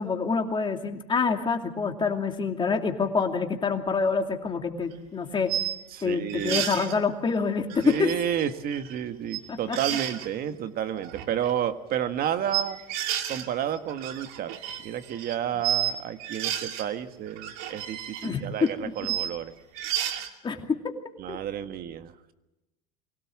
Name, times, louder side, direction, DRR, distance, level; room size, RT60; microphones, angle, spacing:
voice 1, 0.0-5.5 6.0-8.1 9.5-9.8 18.2-19.1 20.4-20.8 21.3-21.4, left 5 dB, 25° left, 4 dB, 2.5 m, -27 dB
sound 1, 4.8-4.9 5.5-5.8 6.3-7.0 7.7-9.0 9.2-9.4 9.7-10.3 11.0-11.5 12.5-13.5 13.8-15.9 16.2-16.9 17.3-19.3 19.7-20.3, right 11 dB, 70° right, 2.7 m, -32 dB
voice 2, 5.9-6.6 7.8-12.8 13.3-14.6 14.8-19.5 21.2-22.3, right 10 dB, 45° right, 9 dB, 1.6 m, -31 dB
24.0 x 17.0 x 7.6 m, 0.96 s
supercardioid pair, 130°, 21 cm